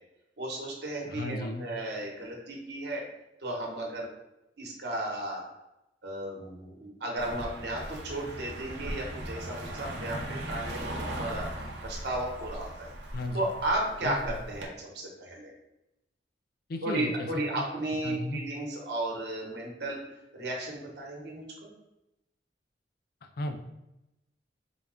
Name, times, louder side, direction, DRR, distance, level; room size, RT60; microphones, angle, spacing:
voice 1, 0.4-3.0 3.4-4.1 4.6-5.5 6.0-11.5 11.8-12.9 13.3-15.5 16.8-20.0 20.3-21.7, right 1 dB, 65° right, -1 dB, 1.1 m, -34 dB
voice 2, 1.1-1.7 13.1-13.4 14.0-14.2 16.7-17.3 17.5-17.6 18.0-18.4 23.4-23.6, left 1 dB, 55° left, 5 dB, 0.4 m, -34 dB
Car passing by, 7.2-14.7, right 1 dB, 80° right, 0.7 m, -39 dB
4.0 x 2.4 x 3.5 m, 0.89 s
head